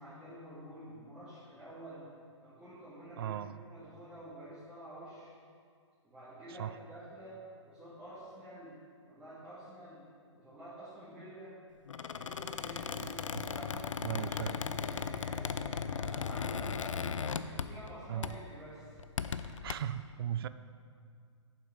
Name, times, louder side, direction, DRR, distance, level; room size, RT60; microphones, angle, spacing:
voice 1, 0.0-2.0 2.4-5.3 6.0-8.8 9.1-10.1 10.3-11.6 12.1-16.8 17.2-19.0, right 1 dB, 10° right, -13 dB, 2.4 m, -49 dB
voice 2, 3.2-3.5 6.5-6.8 13.3-13.5 14.0-14.6 18.1-18.4 19.5-20.5, right 10 dB, 50° right, 14 dB, 0.4 m, -37 dB
Squeak, 11.9-17.9 18.2-18.5 19.0-19.7, left 6 dB, 85° left, 0.5 m, -37 dB
8.9 x 7.3 x 4.8 m, 2.2 s
hypercardioid pair, 145°, 16 cm